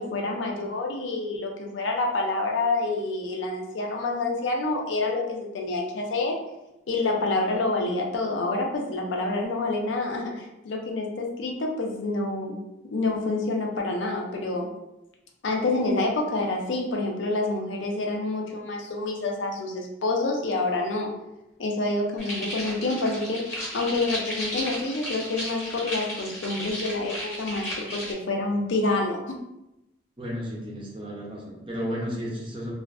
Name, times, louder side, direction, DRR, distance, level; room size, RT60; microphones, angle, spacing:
voice 1, 0.0-6.4 6.9-12.6 12.9-14.7 15.4-21.1 21.6-29.2, left 2 dB, 90° left, 1 dB, 0.5 m, -27 dB
sound 1, 22.2-28.1, equal, 15° left, 0.9 m, -34 dB
voice 2, 30.2-32.7, equal, 30° right, -3 dB, 0.5 m, -33 dB
2.4 x 2.4 x 2.2 m, 0.91 s
head